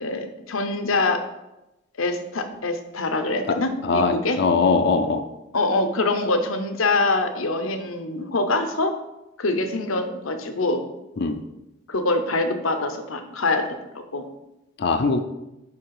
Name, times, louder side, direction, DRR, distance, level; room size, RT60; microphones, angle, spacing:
voice 1, 0.0-1.2 2.0-4.4 5.5-9.0 9.4-10.8 11.9-13.6 14.1-14.3, left 2 dB, 80° left, 7 dB, 0.8 m, -24 dB
voice 2, 3.8-5.2 11.2-11.4 14.8-15.2, left 4 dB, 50° left, 6 dB, 0.5 m, -21 dB
9.9 x 3.5 x 4.8 m, 0.95 s
head